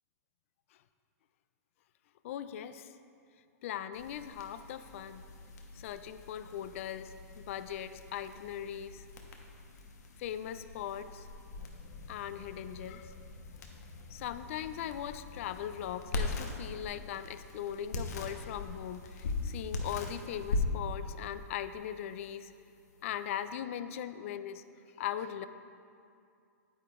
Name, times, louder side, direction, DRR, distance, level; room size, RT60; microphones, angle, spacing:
voice 1, 2.2-2.9 3.6-5.2 5.8-9.0 10.2-11.3 12.1-13.1 14.1-22.5 23.0-24.6 25.0-25.5, left 10 dB, 50° left, 12 dB, 0.3 m, -39 dB
sound 1, 3.9-23.5, left 3 dB, 80° left, 1.0 m, -41 dB
9.2 x 8.8 x 2.4 m, 2.4 s
hypercardioid pair, 145°, 9 cm